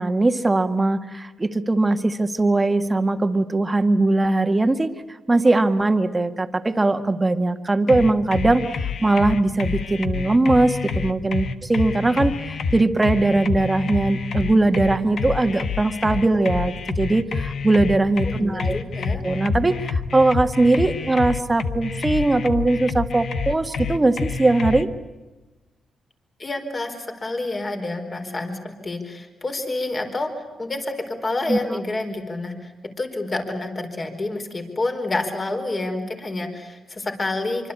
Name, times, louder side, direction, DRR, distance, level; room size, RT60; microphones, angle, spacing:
voice 1, 0.0-4.9 5.3-18.8 19.2-24.9 31.5-31.6, right 2 dB, 20° right, 8 dB, 1.8 m, -20 dB
sound 1, 7.9-24.8, left 5 dB, 65° left, 1.4 m, -28 dB
voice 2, 18.3-19.2 26.4-30.3 30.6-32.7 33.0-37.7, left 2 dB, 35° left, 5 dB, 4.6 m, -28 dB
25.5 x 25.0 x 8.5 m, 1.1 s
cardioid pair, 90°, 0 cm